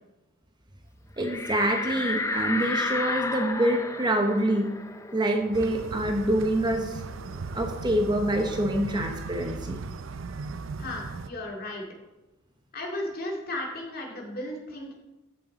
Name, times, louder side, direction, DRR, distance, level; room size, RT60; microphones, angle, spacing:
sound 1, 1.2-6.4 6.8-6.9 7.2-8.9, left 2 dB, 15° left, 0.6 m, -33 dB
voice 1, 1.2-4.7 5.1-7.0 7.5-9.8, right 1 dB, 20° right, 3 dB, 0.9 m, -26 dB
sound 2, 5.5-11.3, right 4 dB, 70° right, 0.5 m, -37 dB
voice 2, 10.8-11.9 12.7-14.9, left 1 dB, 50° left, 0 dB, 2.3 m, -35 dB
14.0 x 6.5 x 4.1 m, 1.0 s
head